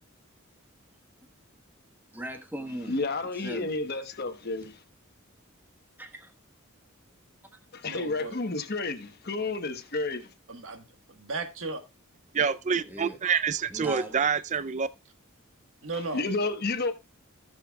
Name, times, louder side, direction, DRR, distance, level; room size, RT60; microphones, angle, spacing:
voice 1, 2.1-3.0 3.3-3.7 6.0-6.3 12.8-13.2 13.7-14.2, equal, 10° right, 1.2 m, -38 dB
voice 2, 2.9-4.8 7.7-10.3 16.1-16.9, left 3 dB, 50° left, 1.1 m, -31 dB
voice 3, 7.8-8.3 10.5-11.8 15.8-16.3, right 3 dB, 70° right, 1.5 m, -36 dB
voice 4, 12.3-14.9, right 6 dB, 35° right, 0.4 m, -27 dB
17.5 x 6.7 x 2.3 m
head